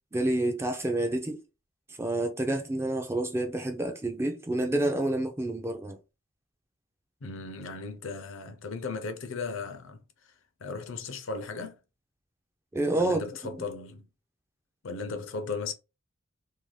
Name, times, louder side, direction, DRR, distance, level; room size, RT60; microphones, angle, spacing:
voice 1, 0.1-1.4 2.0-6.0 12.7-13.2, right 1 dB, 10° right, 0.3 m, -28 dB
voice 2, 7.2-10.3 10.6-11.8 13.0-14.1 14.8-15.7, left 4 dB, 65° left, 0.5 m, -36 dB
2.6 x 2.2 x 3.1 m
head